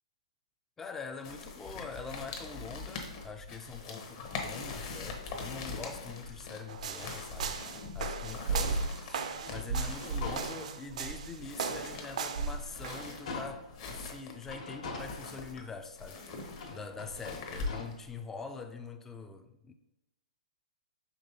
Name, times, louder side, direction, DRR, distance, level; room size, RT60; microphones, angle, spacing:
voice 1, 0.8-7.6 7.9-19.7, left 4 dB, 10° left, 0.3 m, -44 dB
sound 1, 1.2-18.1, left 4 dB, 45° left, 0.8 m, -43 dB
sound 2, 6.7-13.1, right 4 dB, 65° right, 0.4 m, -35 dB
sound 3, 9.4-11.0 11.5-11.6 12.1-13.8 14.4-15.9 16.5-17.8, left 3 dB, 65° left, 1.2 m, -44 dB
5.2 x 3.3 x 2.8 m
hypercardioid pair, 130°, 4 cm